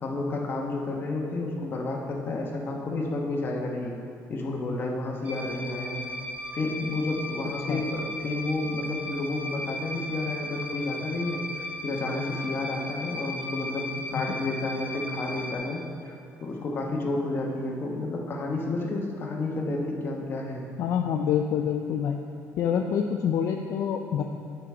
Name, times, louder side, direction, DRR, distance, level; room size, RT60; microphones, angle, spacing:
voice 1, 0.0-4.0 4.3-6.0 6.5-16.1 16.4-20.6, left 2 dB, 40° left, -1 dB, 1.1 m, -31 dB
sound 1, 5.2-15.6, left 1 dB, 25° right, 1.0 m, -36 dB
voice 2, 20.8-22.2 22.6-24.2, left 8 dB, 60° left, 4 dB, 0.4 m, -26 dB
8.9 x 5.0 x 4.4 m, 2.4 s
cardioid pair, 125°, 6 cm